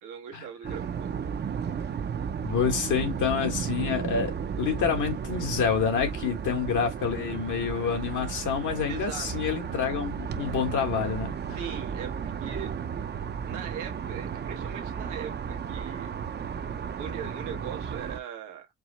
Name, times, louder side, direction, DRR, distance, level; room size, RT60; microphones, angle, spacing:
voice 1, 0.0-1.1 8.9-9.3 11.5-12.7 13.5-16.1 17.0-18.7, right 8 dB, 90° right, 1.1 m, -40 dB
sound 1, 0.6-18.2, right 7 dB, 35° right, 0.5 m, -34 dB
voice 2, 2.4-4.3 4.6-11.6, left 6 dB, 80° left, 1.6 m, -28 dB
4.6 x 2.0 x 4.0 m
cardioid pair, 90°, 30 cm